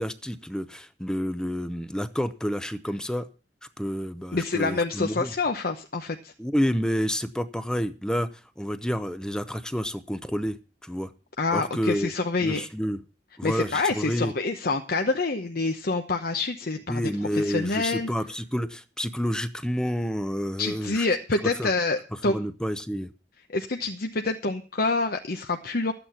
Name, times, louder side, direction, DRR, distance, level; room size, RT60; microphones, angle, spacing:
voice 1, 0.0-3.2 3.8-5.3 6.4-8.3 8.6-10.6 10.8-11.1 11.5-12.1 12.4-13.0 13.4-14.3 16.9-21.1 21.6-21.7 22.2-23.1, equal, 5° left, 12 dB, 0.7 m, -29 dB
voice 2, 4.3-6.3 11.4-12.6 13.4-18.1 20.6-22.3 23.5-25.9, left 3 dB, 55° left, 5 dB, 0.9 m, -27 dB
13.0 x 8.9 x 5.8 m, 0.35 s
head